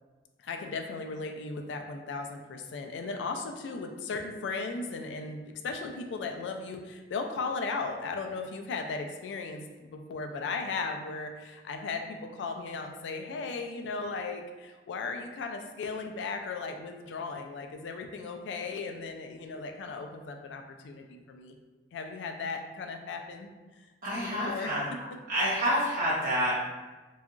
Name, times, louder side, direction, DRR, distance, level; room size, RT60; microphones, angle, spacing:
voice 1, 0.4-21.6 21.9-23.5 24.1-24.7, left 4 dB, 75° left, 4 dB, 0.3 m, -36 dB
voice 2, 24.0-24.8 25.3-26.6, equal, 50° right, -8 dB, 1.1 m, -28 dB
2.7 x 2.3 x 2.4 m, 1.2 s
head